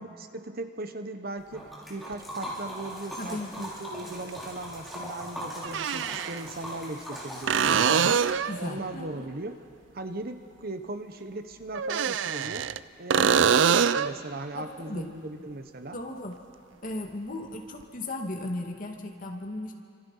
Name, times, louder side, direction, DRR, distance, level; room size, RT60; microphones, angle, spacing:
voice 1, 0.0-8.2 8.6-9.6 9.9-12.7 13.0-16.0, right 2 dB, 55° right, 8 dB, 1.3 m, -38 dB
Liquid, 1.5-8.7, equal, ahead, 5.2 m, -40 dB
sound 1, 2.1-2.2 4.3-4.4 5.6-6.4 7.5-8.6 11.7-12.8 13.1-14.2 17.8-17.9, right 7 dB, 80° right, 0.5 m, -24 dB
voice 2, 3.2-3.6 7.8-9.3 13.1-13.5 14.5-15.1 15.9-16.4 16.8-19.7, left 1 dB, 45° left, 2 dB, 2.3 m, -36 dB
29.0 x 26.0 x 5.7 m, 2.4 s
head